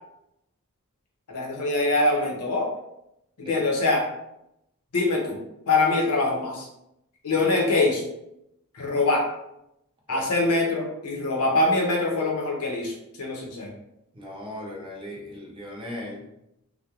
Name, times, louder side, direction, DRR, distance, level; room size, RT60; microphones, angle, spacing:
voice 1, 1.3-2.7 3.4-4.0 4.9-5.4 5.7-6.7 7.2-8.0 8.7-9.2 10.1-13.7, left 2 dB, 75° left, -1 dB, 0.7 m, -24 dB
voice 2, 14.1-16.2, left 1 dB, 25° right, -2 dB, 0.6 m, -37 dB
2.4 x 2.1 x 2.9 m, 0.83 s
head